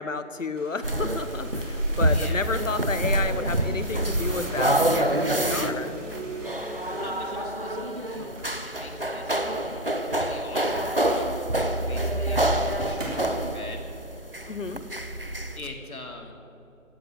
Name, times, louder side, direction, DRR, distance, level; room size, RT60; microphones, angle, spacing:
voice 1, 0.0-5.9 14.5-14.8, left 4 dB, 60° left, 11 dB, 1.1 m, -31 dB
sound 1, 0.6-7.8 8.2-10.2 11.1-11.2 11.9-13.4, right 1 dB, 60° right, 3.7 m, -45 dB
sound 2, 0.8-15.6, right 1 dB, 40° right, 0.6 m, -27 dB
sound 3, 1.0-9.3, right 1 dB, 20° right, 3.1 m, -42 dB
voice 2, 1.9-2.4 7.0-9.4 10.1-13.9 15.6-16.4, left 2 dB, 85° left, 2 dB, 2.8 m, -42 dB
15.5 x 7.8 x 8.6 m, 2.9 s
figure-of-eight pair, 180°, 42 cm